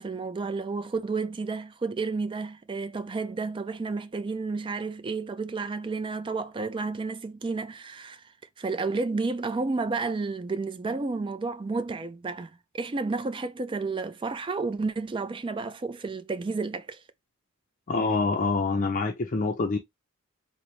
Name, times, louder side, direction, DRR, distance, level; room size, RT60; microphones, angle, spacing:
voice 1, 0.0-8.2 8.6-17.0, right 3 dB, 25° right, 0.3 m, -31 dB
voice 2, 17.9-19.8, left 3 dB, 40° left, 0.5 m, -26 dB
3.9 x 2.1 x 3.0 m
head